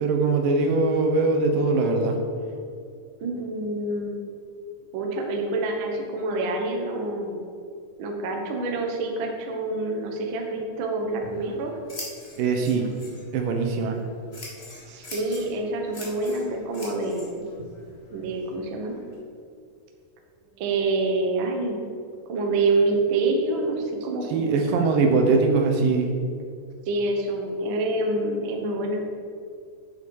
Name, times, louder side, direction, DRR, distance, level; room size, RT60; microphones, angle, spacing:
voice 1, 0.0-2.2 12.4-12.9 13.3-14.0 24.3-26.1, right 3 dB, 85° right, 3 dB, 2.6 m, -22 dB
voice 2, 3.2-4.2 4.9-7.4 8.0-11.7 14.9-17.5 18.1-18.9 20.6-21.8 22.3-24.9 26.8-29.0, right 2 dB, 70° right, 1 dB, 1.2 m, -27 dB
Scissors, 11.0-19.1, left 2 dB, 35° left, 1.0 m, -44 dB
7.9 x 7.2 x 4.8 m, 2.3 s
omnidirectional pair, 3.8 m